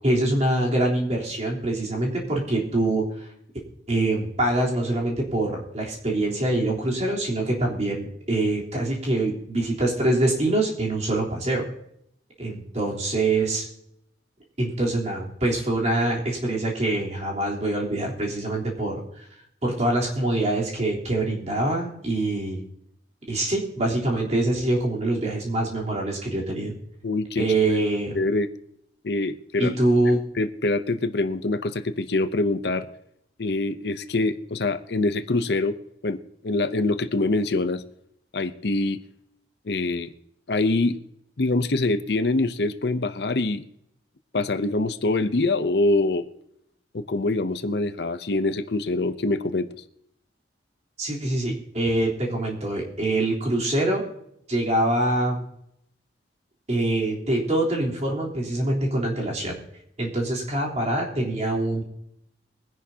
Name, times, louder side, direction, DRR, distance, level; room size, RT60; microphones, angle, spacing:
voice 1, 0.0-3.3 3.9-11.6 12.4-13.7 14.6-19.2 19.6-22.6 23.3-26.7 27.4-28.2 29.6-30.3 51.0-54.0 54.5-55.4 56.7-59.5 60.0-61.8, right 2 dB, 40° right, -3 dB, 3.6 m, -24 dB
voice 2, 27.0-27.8 28.1-28.5 29.0-29.7 30.4-32.9 33.4-35.8 36.0-37.8 38.3-39.0 39.7-40.1 40.5-41.0 41.4-43.7 44.3-46.3 46.9-49.7, left 2 dB, 65° left, 11 dB, 0.7 m, -24 dB
22.5 x 10.5 x 2.8 m, 0.75 s
head